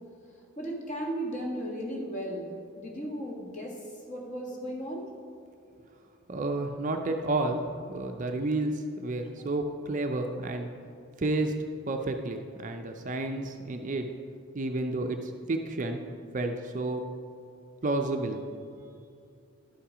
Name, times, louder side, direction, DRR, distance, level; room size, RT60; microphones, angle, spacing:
voice 1, 0.6-3.8 4.1-5.0 18.7-18.9, equal, 35° left, -1 dB, 1.4 m, -35 dB
voice 2, 6.3-10.7 11.2-14.1 14.5-16.0 16.3-17.0 17.8-18.4, right 2 dB, 35° right, 5 dB, 0.4 m, -31 dB
11.5 x 5.7 x 4.9 m, 2.4 s
head